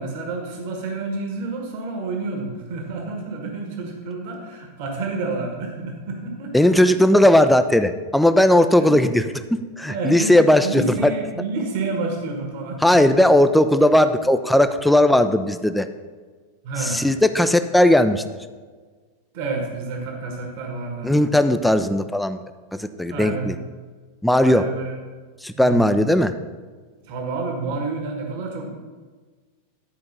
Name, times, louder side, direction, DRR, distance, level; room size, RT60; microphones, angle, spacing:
voice 1, 0.0-6.7 8.8-9.0 9.8-10.4 10.6-13.2 16.6-17.0 19.3-21.2 23.1-23.5 24.4-24.9 25.6-26.0 27.0-28.7, right 3 dB, 50° right, 2 dB, 1.5 m, -29 dB
voice 2, 6.5-9.2 9.5-10.9 12.8-15.9 16.8-18.2 21.0-22.4 22.8-23.6 24.2-24.7 25.4-26.3, left 1 dB, 5° left, 10 dB, 0.5 m, -17 dB
11.0 x 4.8 x 5.3 m, 1.4 s
figure-of-eight pair, 90°, 0 cm